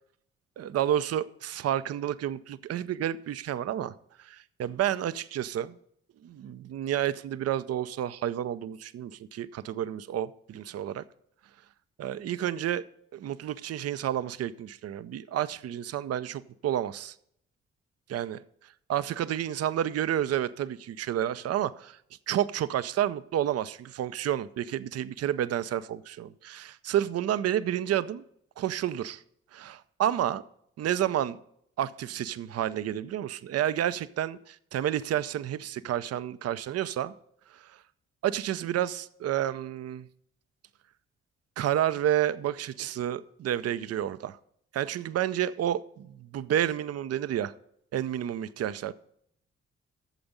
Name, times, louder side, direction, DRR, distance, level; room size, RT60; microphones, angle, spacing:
voice 1, 0.6-5.7 6.2-11.0 12.0-12.8 13.1-17.1 18.1-18.4 18.9-22.0 22.3-28.2 28.6-29.2 29.5-30.4 30.8-31.4 31.8-37.1 37.5-37.6 38.2-40.1 41.6-44.4 44.7-47.5 47.9-48.9, right 11 dB, 55° right, 0.6 m, -30 dB
9.0 x 6.9 x 5.4 m
hypercardioid pair, 40°, 30 cm